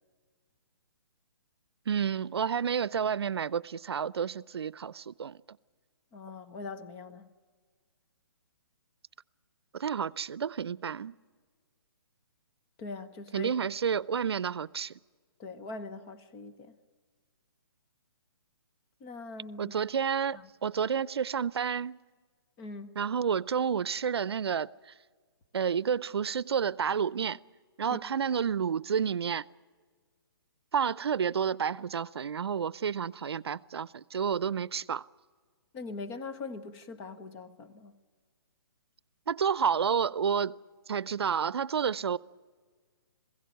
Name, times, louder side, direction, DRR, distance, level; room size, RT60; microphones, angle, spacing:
voice 1, 1.9-5.4 9.7-11.1 13.3-14.9 19.6-22.0 23.0-24.7 25.5-27.4 27.8-29.4 30.7-35.0 39.3-40.6 40.9-42.2, right 7 dB, 85° right, 0.6 m, -30 dB
voice 2, 6.1-7.3 12.8-13.5 15.4-16.8 19.0-19.7 20.3-20.5 22.6-22.9 27.9-28.0 35.7-37.9, left 3 dB, 20° left, 1.1 m, -42 dB
21.0 x 16.5 x 9.3 m
hypercardioid pair, 165°, 13 cm